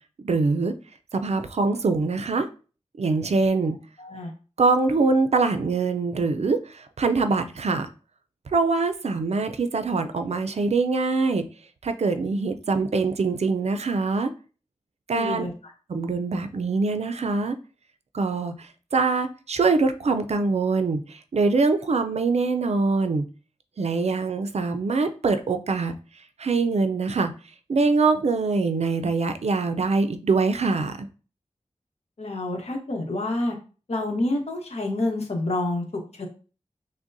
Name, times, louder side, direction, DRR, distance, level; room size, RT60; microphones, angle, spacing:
voice 1, 0.2-0.7 1.1-2.5 3.0-3.8 4.6-7.9 8.5-11.4 11.8-14.3 15.1-15.4 15.9-17.6 18.1-23.3 23.8-25.9 26.4-27.3 27.7-31.1, right 4 dB, 65° right, 0.5 m, -23 dB
voice 2, 4.0-4.3 15.1-15.5 32.2-33.6 33.9-35.8 36.2-36.3, left 2 dB, 60° left, 1.1 m, -28 dB
6.1 x 2.2 x 2.6 m
wide cardioid pair, 80°, 12 cm